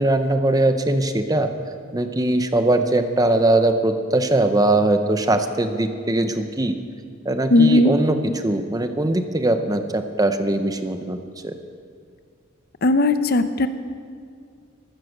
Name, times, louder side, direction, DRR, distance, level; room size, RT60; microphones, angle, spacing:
voice 1, 0.0-1.5 1.9-6.8 7.2-8.2 8.4-11.2 11.4-11.5, right 2 dB, 20° right, 8 dB, 0.8 m, -20 dB
voice 2, 7.5-7.9 12.8-13.7, left 2 dB, 50° left, 10 dB, 0.7 m, -17 dB
14.0 x 14.0 x 6.5 m, 2.2 s
head